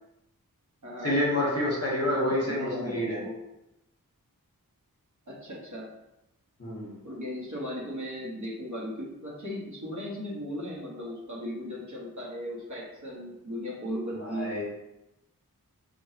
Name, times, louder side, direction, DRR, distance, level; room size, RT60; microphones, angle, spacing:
voice 1, 1.0-3.2 6.6-6.9 14.1-14.6, left 1 dB, 45° left, -4 dB, 1.1 m, -28 dB
voice 2, 2.0-3.4 5.3-5.9 7.0-14.6, equal, 55° right, -5 dB, 1.2 m, -37 dB
4.9 x 2.5 x 2.8 m, 0.91 s
wide cardioid pair, 60°, 35 cm